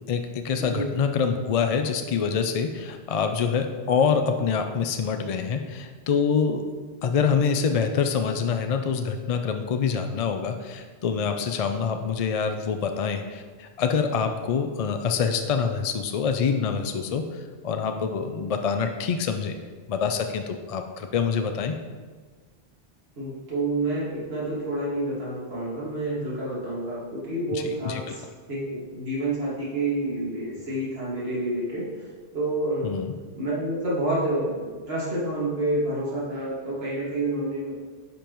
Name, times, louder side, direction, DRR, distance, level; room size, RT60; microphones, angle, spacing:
voice 1, 0.1-6.6 7.0-19.5 19.9-21.7 27.5-28.0 32.8-33.1, left 6 dB, 55° left, 6 dB, 0.4 m, -26 dB
voice 2, 23.2-28.2 28.5-32.1 32.3-33.0 33.4-37.7, right 1 dB, 70° right, -7 dB, 2.2 m, -28 dB
9.8 x 5.2 x 3.0 m, 1.5 s
omnidirectional pair, 1.1 m